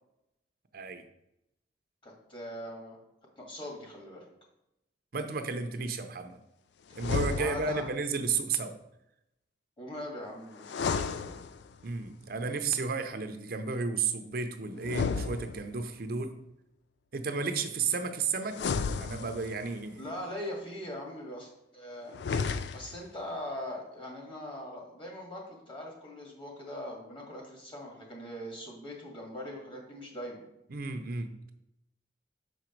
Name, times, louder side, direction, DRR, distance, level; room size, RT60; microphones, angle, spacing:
voice 1, 0.7-1.0 5.1-6.4 7.0-8.8 11.8-16.4 17.1-18.7 19.0-20.1 30.7-31.5, right 4 dB, 55° right, 7 dB, 0.6 m, -33 dB
voice 2, 2.0-3.0 3.4-4.2 7.3-7.9 9.8-11.4 20.0-22.1 22.7-30.4, left 1 dB, 30° left, -1 dB, 2.0 m, -41 dB
sound 1, 6.9-7.9 10.6-11.9 14.8-16.0 18.5-19.7 22.1-23.1, left 5 dB, 70° left, 0.4 m, -33 dB
6.4 x 5.1 x 4.5 m, 0.83 s
head